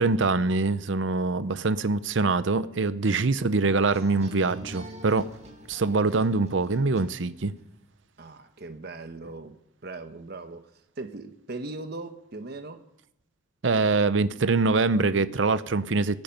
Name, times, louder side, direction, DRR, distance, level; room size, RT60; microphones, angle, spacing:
voice 1, 0.0-5.3 5.7-7.5 13.6-16.2, right 3 dB, 70° right, 0.7 m, -24 dB
sound 1, 3.9-7.6, right 1 dB, 35° right, 2.0 m, -45 dB
voice 2, 8.2-12.8, right 2 dB, 55° right, 1.1 m, -39 dB
23.5 x 9.3 x 5.3 m
head